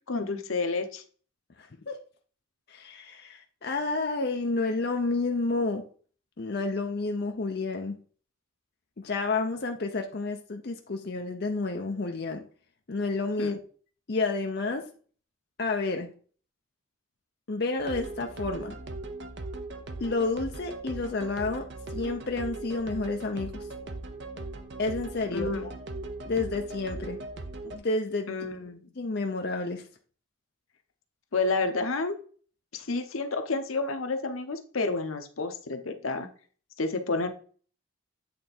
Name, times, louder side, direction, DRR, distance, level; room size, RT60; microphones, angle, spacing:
voice 1, 0.1-1.0 13.4-13.5 25.3-25.7 28.3-28.9 31.3-32.2 32.7-36.3 36.8-37.3, left 3 dB, 85° left, 7 dB, 0.9 m, -30 dB
voice 2, 1.6-2.0 2.7-5.8 6.4-8.0 9.0-12.4 12.9-13.6 14.1-14.9 15.6-16.1 17.5-18.8 20.0-21.7 21.9-23.7 24.8-25.8 26.3-27.2 27.6-28.3 29.0-29.9, left 3 dB, 50° left, 3 dB, 0.6 m, -30 dB
sound 1, 17.8-27.8, right 2 dB, 55° right, 0.7 m, -39 dB
8.4 x 3.4 x 4.2 m, 0.43 s
head